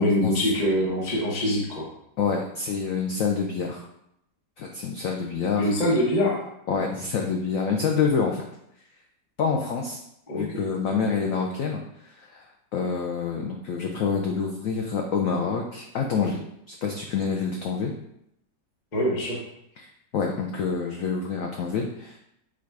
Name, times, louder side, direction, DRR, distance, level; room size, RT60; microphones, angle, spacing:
voice 1, 0.0-1.9 5.6-6.4 10.3-10.6 18.9-19.4, left 1 dB, 30° left, -4 dB, 0.9 m, -24 dB
voice 2, 2.2-3.9 4.6-5.7 6.7-8.4 9.4-10.0 10.3-16.4 16.7-17.9 19.8-19.9 20.1-22.2, left 5 dB, 80° left, 1 dB, 0.7 m, -27 dB
4.8 x 2.4 x 4.5 m, 0.77 s
omnidirectional pair, 2.0 m